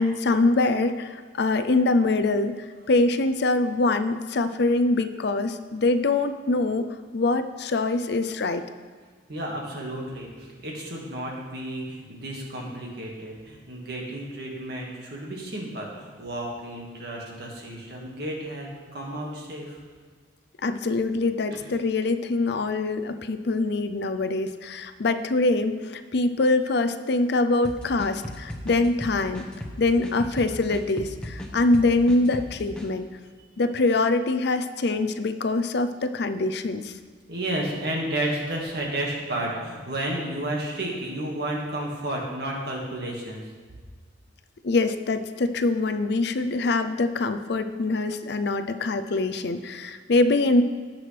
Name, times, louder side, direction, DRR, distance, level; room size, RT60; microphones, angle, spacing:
voice 1, 0.0-6.9 7.1-8.6 20.6-29.5 29.8-33.1 33.6-37.0 44.6-50.6, left 2 dB, 60° left, 9 dB, 0.5 m, -24 dB
voice 2, 9.3-19.8 21.5-21.7 37.3-43.4, right 1 dB, 60° right, -1 dB, 1.9 m, -32 dB
sound 1, 27.6-32.9, equal, 5° left, 1.1 m, -36 dB
17.5 x 6.2 x 3.4 m, 1.5 s
head